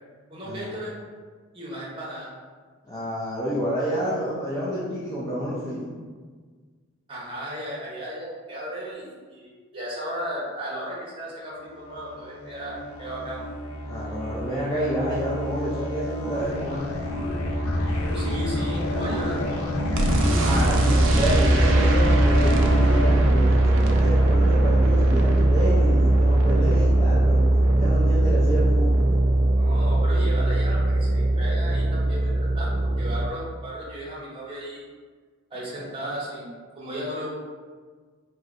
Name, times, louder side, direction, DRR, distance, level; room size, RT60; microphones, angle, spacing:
voice 1, 0.3-0.9 1.5-2.3 7.1-13.4 18.1-19.6 29.6-34.8 35.5-37.3, right 1 dB, 25° right, -6 dB, 0.7 m, -35 dB
voice 2, 2.8-5.9 13.9-16.8 20.3-27.4 27.7-29.1 35.8-35.9, equal, 15° left, -8 dB, 0.4 m, -29 dB
sound 1, 11.8-23.2, equal, 80° left, 0.4 m, -28 dB
sound 2, 19.9-33.3, right 1 dB, 60° right, 0.4 m, -20 dB
3.0 x 2.7 x 2.5 m, 1.5 s
head